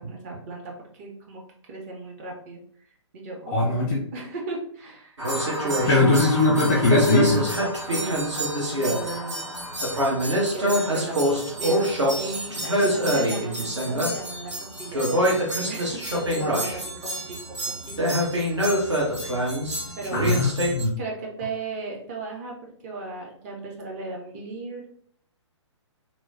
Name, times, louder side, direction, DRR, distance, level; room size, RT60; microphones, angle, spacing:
voice 1, 0.0-2.6 3.1-5.2 5.6-6.2 6.7-6.8 7.8-8.4 8.8-9.8 10.5-14.5 14.8-15.4 15.7-19.0 20.0-20.5 21.0-22.6 22.8-24.9, right 3 dB, 30° right, -1 dB, 0.6 m, -36 dB
voice 2, 3.5-4.0 5.9-7.5 20.1-21.0, left 2 dB, 15° left, -4 dB, 0.3 m, -20 dB
sound 1, 5.2-20.8, equal, 70° right, 0.9 m, -25 dB
2.9 x 2.0 x 2.7 m, 0.62 s
figure-of-eight pair, 125°, 16 cm